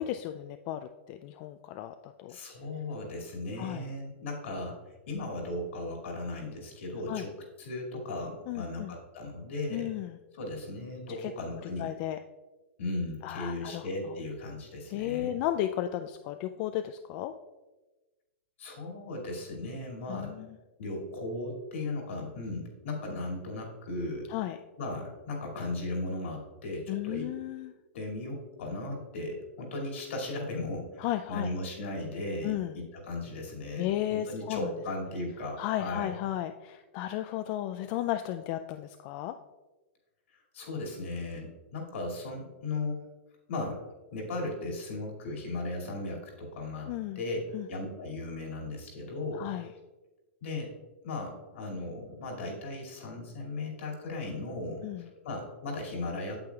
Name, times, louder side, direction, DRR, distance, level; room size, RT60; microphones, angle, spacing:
voice 1, 0.0-2.4 3.6-3.9 7.1-7.3 8.5-9.0 9.7-10.2 11.1-11.3 11.8-12.2 13.2-14.2 14.9-17.3 20.1-20.6 24.3-24.6 26.9-27.7 31.0-31.5 32.4-32.8 33.8-34.7 35.6-39.4 46.9-47.2 47.5-47.7 49.3-49.7 54.8-55.1, left 13 dB, 45° left, 8 dB, 0.3 m, -34 dB
voice 2, 2.3-4.8 5.1-7.3 7.6-9.9 10.3-11.9 12.8-15.3 18.6-20.4 20.8-24.3 24.8-27.3 27.9-36.1 40.5-43.0 43.5-43.8 44.1-46.9 47.2-47.4 47.7-49.5 50.4-50.7 51.0-54.8 55.2-56.4, left 2 dB, 70° left, -1 dB, 2.3 m, -36 dB
8.6 x 7.5 x 2.3 m, 1.2 s
hypercardioid pair, 120°, 7 cm